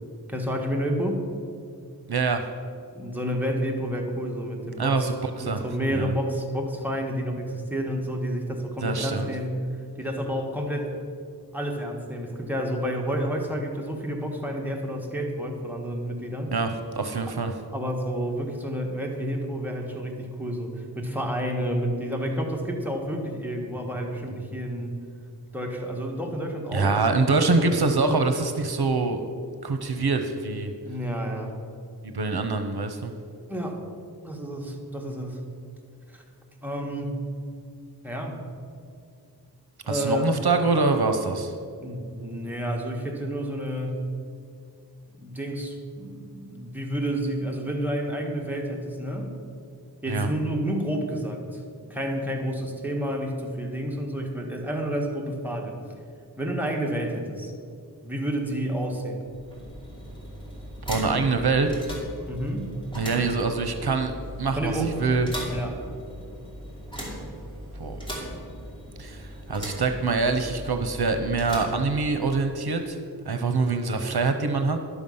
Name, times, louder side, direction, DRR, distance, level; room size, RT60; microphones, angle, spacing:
voice 1, 0.3-1.2 2.9-5.1 5.4-9.7 10.0-10.9 11.5-16.5 17.3-17.4 17.7-24.9 25.5-28.0 30.8-31.6 33.5-33.8 34.2-35.4 36.1-36.2 36.6-37.2 38.0-38.4 39.8-40.3 41.8-44.1 45.2-49.4 50.0-51.6 51.9-55.8 56.4-57.5 58.0-59.3 62.3-62.8 64.6-65.1 65.5-65.8, equal, 5° right, 0 dB, 1.6 m, -30 dB
voice 2, 2.1-2.4 4.8-5.6 5.9-6.1 8.8-9.3 16.5-17.5 26.7-29.2 29.6-30.7 32.0-33.1 39.9-41.5 50.1-50.3 60.9-61.7 62.9-64.1 64.4-65.3 67.8-68.0 69.0-73.0 73.3-74.8, right 4 dB, 70° right, 7 dB, 0.8 m, -25 dB
sound 1, 59.2-72.5, equal, 10° left, 2.6 m, -38 dB
11.5 x 7.1 x 5.5 m, 2.4 s
wide cardioid pair, 45°, 40 cm